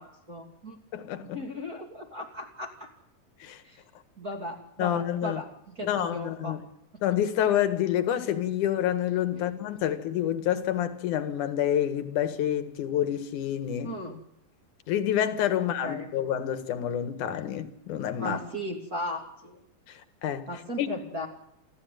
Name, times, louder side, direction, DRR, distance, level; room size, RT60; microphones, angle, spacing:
voice 1, 0.0-0.8 1.3-2.9 3.6-3.8 4.2-6.6 9.3-9.5 13.8-14.2 15.8-16.1 18.2-19.6 20.5-21.3, left 1 dB, 25° right, 2.7 m, -37 dB
voice 2, 0.9-1.4 3.4-3.6 4.8-5.4 5.8-6.6 7.0-14.0 14.9-18.4 19.9-20.5 20.8-20.9, left 10 dB, 60° left, 2.9 m, -28 dB
29.0 x 12.5 x 9.2 m
omnidirectional pair, 4.2 m